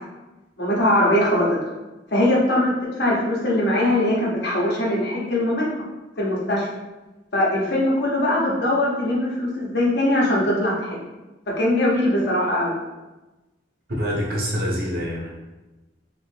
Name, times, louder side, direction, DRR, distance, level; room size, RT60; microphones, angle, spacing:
voice 1, 0.6-1.7 2.1-2.7 3.0-5.6 6.2-6.7 7.3-11.0 11.6-12.7, left 1 dB, 65° left, -5 dB, 1.0 m, -21 dB
voice 2, 14.0-15.3, equal, 55° right, -3 dB, 0.8 m, -25 dB
3.1 x 2.4 x 3.4 m, 1.1 s
head